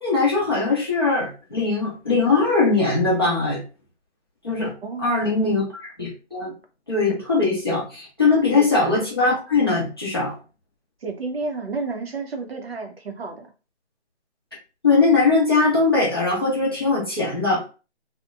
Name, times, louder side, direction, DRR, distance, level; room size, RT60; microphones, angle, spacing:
voice 1, 0.0-3.6 4.4-4.7 5.0-6.5 6.9-10.3 14.8-17.6, left 3 dB, 20° left, 0.6 m, -21 dB
voice 2, 4.8-5.5 8.5-8.7 11.0-13.5, right 4 dB, 55° right, 0.6 m, -31 dB
2.8 x 2.1 x 2.3 m
figure-of-eight pair, 165°, 35 cm